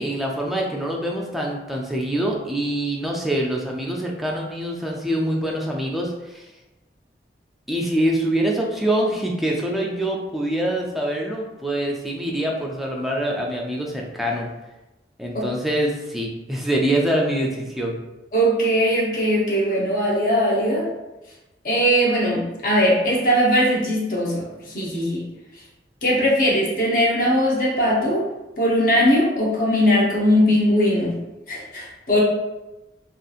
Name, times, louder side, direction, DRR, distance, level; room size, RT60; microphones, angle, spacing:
voice 1, 0.0-6.5 7.7-14.5 15.2-18.0, right 1 dB, ahead, -2 dB, 0.3 m, -25 dB
voice 2, 18.3-20.9 21.6-25.2 26.0-28.2 28.6-31.1 31.5-32.2, equal, 50° left, -4 dB, 0.8 m, -20 dB
2.7 x 2.4 x 2.4 m, 1.0 s
head